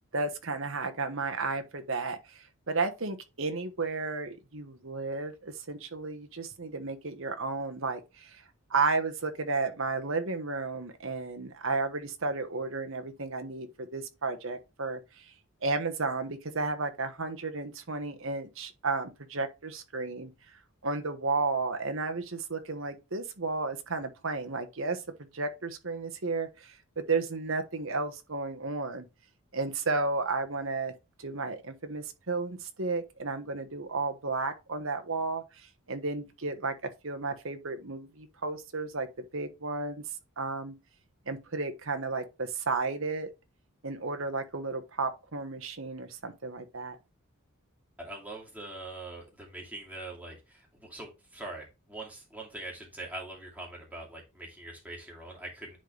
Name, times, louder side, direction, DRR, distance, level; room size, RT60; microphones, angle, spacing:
voice 1, 0.1-8.4 8.7-15.3 15.6-20.3 20.8-25.0 25.3-29.0 29.5-30.9 31.2-36.7 37.0-39.1 39.3-40.0 40.4-40.7 41.3-43.3 43.8-47.0, right 3 dB, 60° right, 1.2 m, -33 dB
voice 2, 48.0-55.8, right 2 dB, 5° right, 2.4 m, -43 dB
10.0 x 4.0 x 3.3 m
head